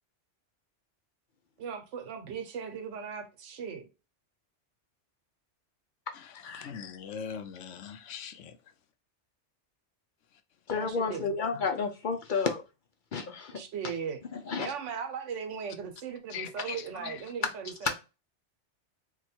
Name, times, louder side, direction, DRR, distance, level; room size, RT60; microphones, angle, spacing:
voice 1, 1.6-3.9 10.8-11.3 13.5-14.2 14.6-17.9, right 6 dB, 90° right, 1.1 m, -38 dB
voice 2, 6.5-8.6 16.3-17.2, left 7 dB, 85° left, 0.9 m, -41 dB
voice 3, 10.7-12.6 13.1-13.6 14.3-14.7 16.6-16.7 17.4-17.5 17.8-17.9, left 5 dB, 60° left, 0.5 m, -31 dB
2.9 x 2.3 x 4.2 m
omnidirectional pair, 1.2 m